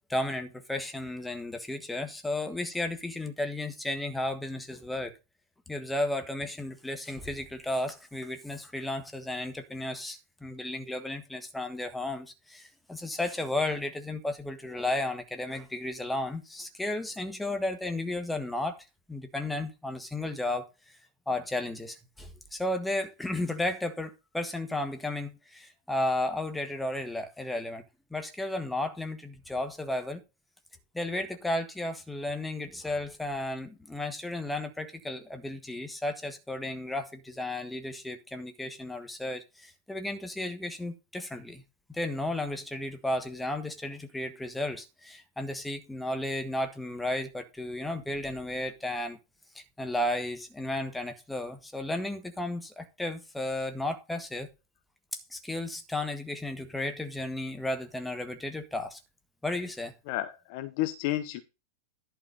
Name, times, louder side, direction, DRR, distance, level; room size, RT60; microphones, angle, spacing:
voice 1, 0.1-5.1 5.7-20.9 21.3-27.8 28.1-30.2 30.9-41.6 41.9-49.2 49.5-54.5 55.1-59.0 59.4-59.9, left 1 dB, 5° left, 1.6 m, -33 dB
voice 2, 60.1-61.4, left 15 dB, 45° left, 0.9 m, -31 dB
11.0 x 4.8 x 5.1 m
figure-of-eight pair, 90°, 0 cm